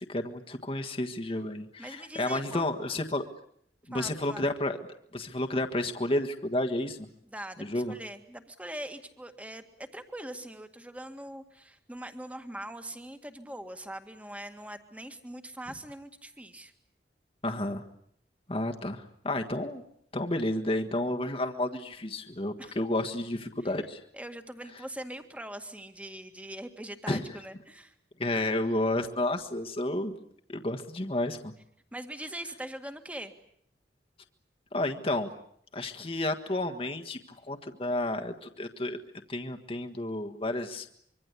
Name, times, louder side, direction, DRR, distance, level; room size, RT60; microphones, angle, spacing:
voice 1, 0.1-3.2 3.9-4.8 5.1-7.1 7.6-7.9 17.4-17.8 18.5-19.8 20.1-24.0 27.1-27.3 28.2-30.2 30.5-31.5 34.7-35.3 35.7-39.0 39.3-40.9, left 1 dB, 30° left, 5 dB, 1.6 m, -31 dB
voice 2, 1.8-2.7 3.9-4.4 7.2-16.7 22.6-22.8 24.1-28.0 31.9-33.3, right 1 dB, 10° right, 8 dB, 1.9 m, -42 dB
25.0 x 24.5 x 8.3 m, 0.67 s
head